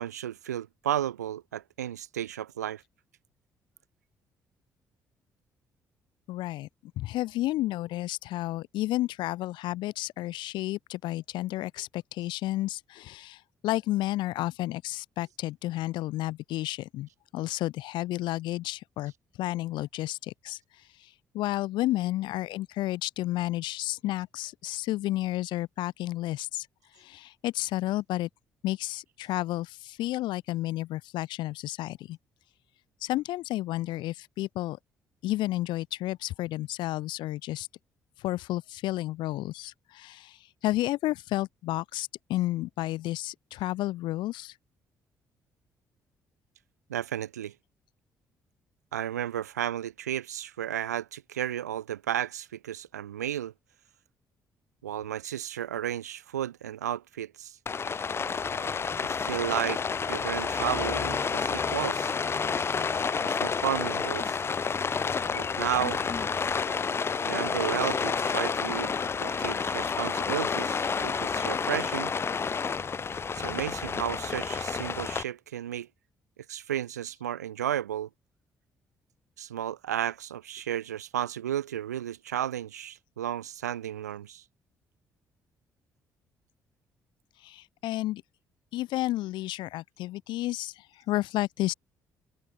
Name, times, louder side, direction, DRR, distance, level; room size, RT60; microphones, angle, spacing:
voice 1, 0.0-2.8 46.9-47.5 48.9-53.5 54.8-57.6 59.0-59.8 60.1-62.2 63.2-64.4 65.3-66.0 67.2-68.9 69.2-72.1 73.3-75.9 76.5-78.1 79.4-84.4, right 11 dB, 85° right, 0.9 m, -33 dB
voice 2, 6.3-6.7 7.0-19.1 19.4-20.6 21.0-21.1 21.3-26.7 27.0-28.3 28.6-32.2 33.0-34.8 35.2-37.7 38.2-44.5 87.4-88.2 88.7-91.7, left 16 dB, 65° left, 0.7 m, -31 dB
Rain, 57.7-75.2, left 5 dB, 30° left, 0.4 m, -30 dB
figure-of-eight pair, 45°, 9 cm